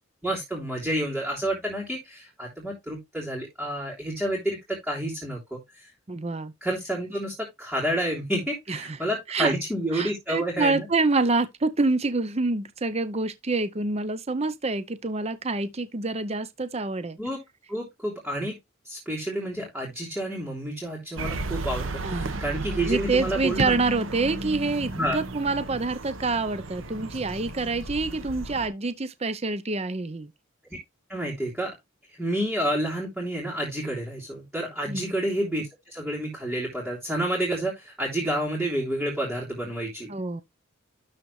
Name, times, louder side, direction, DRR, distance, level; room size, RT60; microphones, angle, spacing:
voice 1, 0.2-5.9 6.6-10.9 17.2-17.4 17.7-18.6 18.8-23.8 24.9-25.2 31.1-31.7 32.2-40.1, right 1 dB, ahead, 3.3 m, -29 dB
voice 2, 6.1-6.5 8.7-9.0 9.3-9.5 9.9-17.2 22.0-22.5 22.8-30.3 34.9-35.1 40.1-40.4, right 3 dB, 30° right, 0.7 m, -27 dB
sound 1, 21.2-28.7, right 2 dB, 75° right, 1.2 m, -34 dB
12.5 x 4.1 x 3.2 m
head